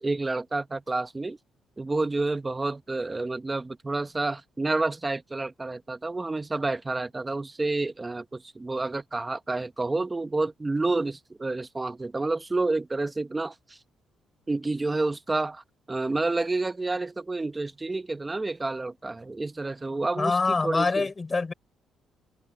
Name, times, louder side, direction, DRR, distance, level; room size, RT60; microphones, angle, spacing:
voice 1, 0.0-1.4 1.8-13.8 14.5-21.1, right 3 dB, 20° right, 1.1 m, -29 dB
voice 2, 20.2-21.5, left 3 dB, 30° left, 4.5 m, -25 dB
open air
cardioid pair, 90°, 0 cm